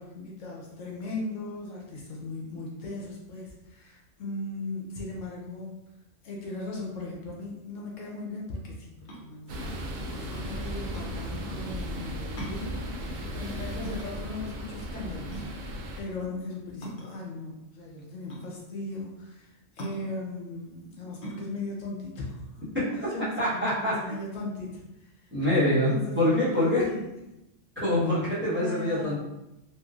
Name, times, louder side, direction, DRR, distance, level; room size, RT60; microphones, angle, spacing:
voice 1, 0.0-5.8 6.2-9.6 10.1-13.0 13.3-15.7 16.0-22.4 22.8-25.1 25.5-27.1 28.5-29.2, left 2 dB, 80° left, -2 dB, 1.1 m, -38 dB
sound 1, 9.1-23.3, right 1 dB, 50° left, 0.7 m, -43 dB
sound 2, 9.5-16.0, equal, 75° right, 0.9 m, -36 dB
voice 2, 23.4-24.1 25.3-26.8 27.8-29.2, left 1 dB, 10° right, -11 dB, 1.0 m, -25 dB
3.1 x 2.5 x 2.4 m, 0.92 s
omnidirectional pair, 1.3 m